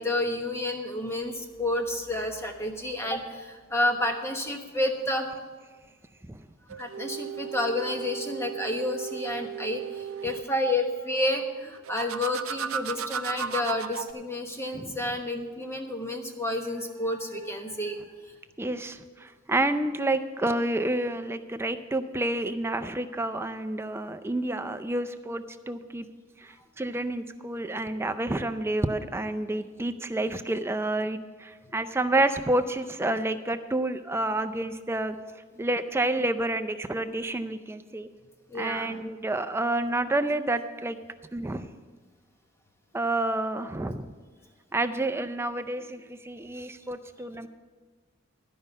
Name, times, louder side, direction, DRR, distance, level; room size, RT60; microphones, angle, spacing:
voice 1, 0.0-5.3 6.8-18.0 38.5-39.0, left 1 dB, 15° left, 3 dB, 1.1 m, -30 dB
sound 1, 6.7-10.5 11.8-14.1, right 7 dB, 80° right, 0.5 m, -35 dB
voice 2, 18.6-26.1 26.8-35.2 35.6-38.1 38.5-41.0 41.3-41.7 42.9-44.1 44.7-47.5, right 2 dB, 10° right, 9 dB, 0.5 m, -29 dB
12.5 x 5.5 x 8.0 m, 1.4 s
head